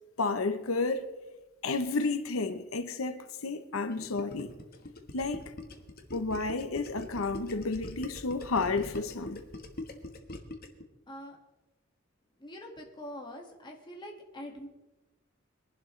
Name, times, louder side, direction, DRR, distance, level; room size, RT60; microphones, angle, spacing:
voice 1, 0.2-1.1 1.6-4.6 5.1-5.5 6.1-9.4, left 3 dB, 85° left, 0.9 m, -31 dB
Gurgling, 3.7-10.8, left 1 dB, 45° left, 1.4 m, -43 dB
voice 2, 11.1-11.4 12.4-14.7, equal, 25° left, 1.9 m, -44 dB
22.5 x 11.5 x 3.3 m
head